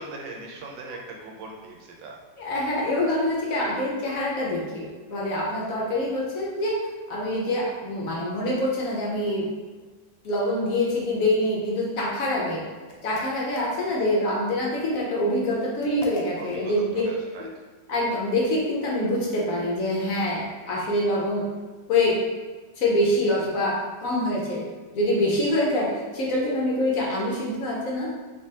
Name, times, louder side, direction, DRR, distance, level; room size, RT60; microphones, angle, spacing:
voice 1, 0.0-2.1 12.5-12.6 13.8-13.9 16.4-17.5, right 3 dB, 90° right, 0 dB, 1.4 m, -40 dB
voice 2, 2.4-9.4 10.2-12.6 13.0-17.0 17.9-21.4 21.9-22.2 22.8-24.6 24.9-28.1, left 1 dB, 60° left, -4 dB, 0.9 m, -25 dB
sound 1, 12.9-14.2 15.8-16.6, left 2 dB, 80° left, 1.2 m, -42 dB
3.4 x 3.0 x 2.8 m, 1.3 s
omnidirectional pair, 1.9 m